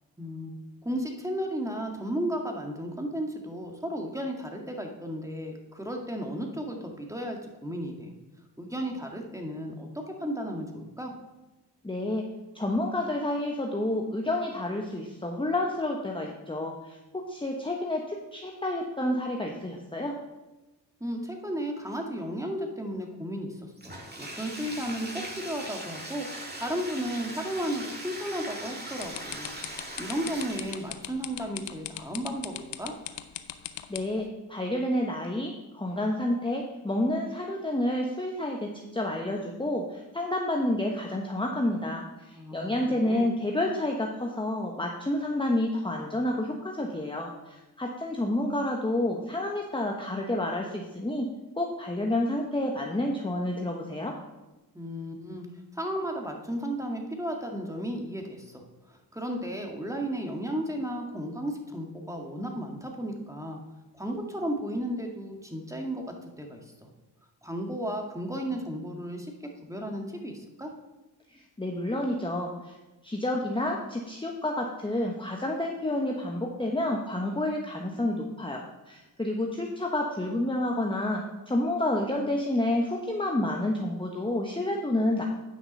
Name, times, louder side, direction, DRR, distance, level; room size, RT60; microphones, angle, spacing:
voice 1, 0.2-0.5 0.8-8.1 8.6-11.1 21.0-29.5 30.0-32.9 42.3-43.3 54.7-55.5 55.7-63.6 63.9-66.0 66.4-66.6 67.4-69.3 69.6-70.7, equal, 5° right, 2 dB, 1.9 m, -34 dB
voice 2, 11.8-12.3 12.5-20.2 33.9-51.3 51.6-54.2 71.3-72.8 73.0-85.2, left 1 dB, 10° left, 0 dB, 1.1 m, -29 dB
Bathtub (filling or washing), 23.8-31.0, right 1 dB, 25° right, 2.3 m, -40 dB
sound 1, 29.0-34.2, left 13 dB, 85° left, 0.7 m, -38 dB
9.5 x 5.9 x 5.4 m, 1.1 s
cardioid pair, 55°, 42 cm